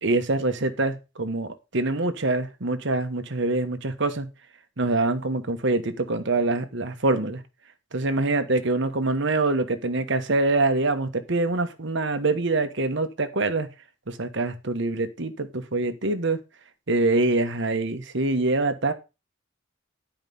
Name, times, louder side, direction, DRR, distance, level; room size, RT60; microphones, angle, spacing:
voice 1, 0.0-4.3 4.8-7.4 7.9-13.7 14.1-16.4 16.9-18.9, right 2 dB, 60° right, 1.2 m, -25 dB
11.5 x 5.0 x 5.4 m
head